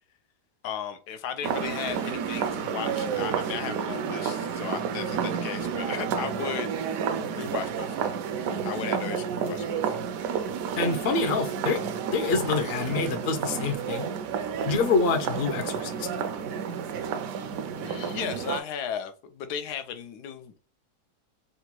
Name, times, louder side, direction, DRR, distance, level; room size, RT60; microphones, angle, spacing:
voice 1, 0.6-6.7 7.3-8.2 8.6-10.0 17.8-20.6, left 8 dB, 85° left, 1.1 m, -35 dB
sound 1, 1.4-18.6, right 7 dB, 70° right, 0.9 m, -30 dB
voice 2, 10.8-11.8 12.1-14.1 14.7-16.1, left 4 dB, 60° left, 0.6 m, -26 dB
3.9 x 2.2 x 4.3 m
omnidirectional pair, 1.7 m